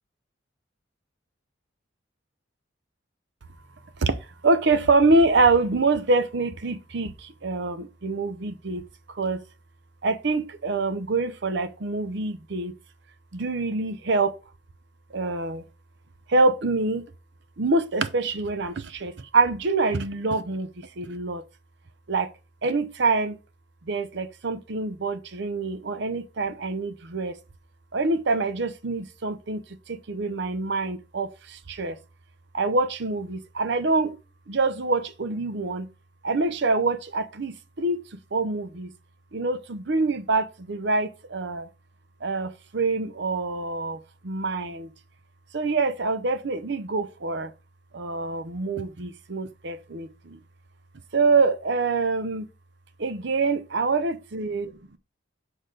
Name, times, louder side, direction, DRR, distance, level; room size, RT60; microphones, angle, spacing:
voice 1, 4.4-8.8 9.1-9.4 10.0-12.7 13.3-14.4 15.1-15.6 16.3-17.0 17.6-21.4 22.1-22.3 22.6-23.4 23.9-27.4 27.9-32.0 32.5-34.1 34.5-35.9 36.2-38.9 39.3-41.7 42.2-44.9 45.5-47.5 47.9-50.4 51.1-52.5 53.0-54.7, right 3 dB, 65° right, 0.7 m, -25 dB
6.6 x 4.9 x 3.8 m
head